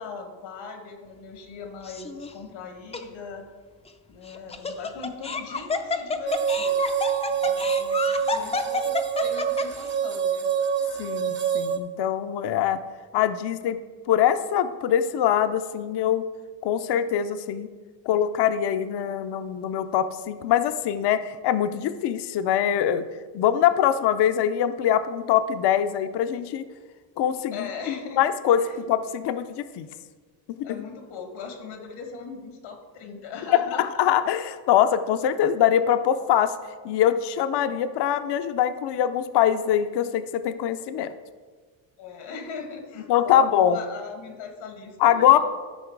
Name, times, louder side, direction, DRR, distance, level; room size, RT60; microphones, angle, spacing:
voice 1, 0.0-3.5 4.1-6.8 7.3-10.5 27.5-28.2 28.6-28.8 30.6-33.8 37.7-37.8 42.0-45.4, left 5 dB, 90° left, 4 dB, 2.1 m, -39 dB
Laughter, 1.8-2.3 2.9-3.0 4.3-9.9, left 4 dB, 15° left, 0.4 m, -29 dB
sound 1, 6.3-11.8, right 8 dB, 25° right, 0.7 m, -26 dB
voice 2, 11.0-12.8 13.1-13.8 14.1-16.2 16.6-17.7 18.1-23.0 23.3-26.6 27.2-27.7 28.2-29.9 30.5-30.8 33.5-36.5 36.8-41.1 43.1-43.8 45.0-45.4, left 10 dB, 60° left, 11 dB, 0.6 m, -23 dB
13.0 x 5.7 x 4.6 m, 1.5 s
cardioid pair, 155°, 46 cm